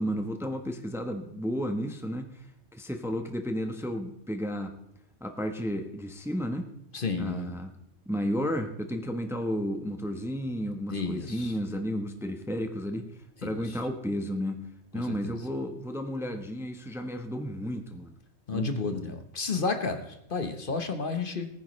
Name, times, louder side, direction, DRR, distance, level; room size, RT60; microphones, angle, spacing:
voice 1, 0.0-2.5 2.7-4.7 5.2-6.7 7.2-7.7 8.1-13.1 13.4-14.6 14.9-18.1 18.5-19.1, equal, ahead, 5 dB, 0.9 m, -32 dB
voice 2, 6.9-7.6 10.9-11.5 13.4-13.6 14.9-15.4 18.5-21.5, left 4 dB, 50° left, 7 dB, 1.2 m, -32 dB
19.0 x 9.9 x 3.2 m, 0.80 s
omnidirectional pair, 1.1 m